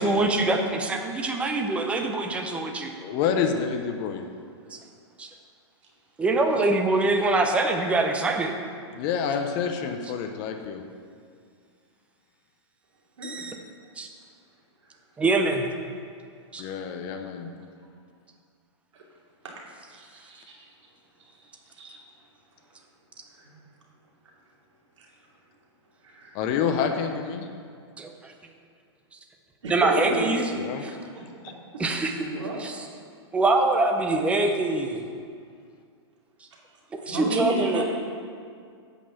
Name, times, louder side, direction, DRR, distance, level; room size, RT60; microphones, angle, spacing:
voice 1, 0.0-2.9 4.7-4.8 5.2-5.3 6.2-8.5 13.2-13.6 14.0-14.1 15.2-15.7 16.5-16.6 28.0-28.1 29.7-30.4 30.8-30.9 31.8-32.1 32.6-32.7 33.3-35.0 36.9-37.8, right 2 dB, 10° right, 4 dB, 0.6 m, -24 dB
voice 2, 3.0-4.2 8.9-10.8 16.6-17.5 26.3-27.5 30.5-30.8, left 7 dB, 30° left, 5 dB, 0.6 m, -28 dB
voice 3, 19.9-20.7 21.3-22.0 23.3-23.6 25.0-25.1 26.0-26.4 29.6-30.3 30.7-31.2 32.2-32.6 37.0-37.8, right 1 dB, 90° right, -3 dB, 2.7 m, -33 dB
8.4 x 5.5 x 7.1 m, 2.2 s
hypercardioid pair, 155°, 15 cm